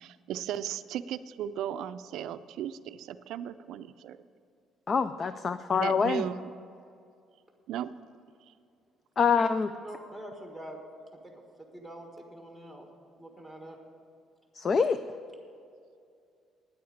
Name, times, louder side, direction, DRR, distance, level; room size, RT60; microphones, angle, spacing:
voice 1, 0.0-4.2 5.8-6.6 7.7-7.9, right 10 dB, 70° right, 12 dB, 0.4 m, -36 dB
voice 2, 4.9-6.2 9.2-9.7 14.6-15.0, left 5 dB, 30° left, 12 dB, 0.3 m, -25 dB
voice 3, 9.8-10.8 11.1-11.3 11.6-12.9 13.2-13.8, right 1 dB, 10° left, 1 dB, 1.4 m, -45 dB
9.7 x 8.6 x 8.6 m, 2.4 s
cardioid pair, 160°, 0 cm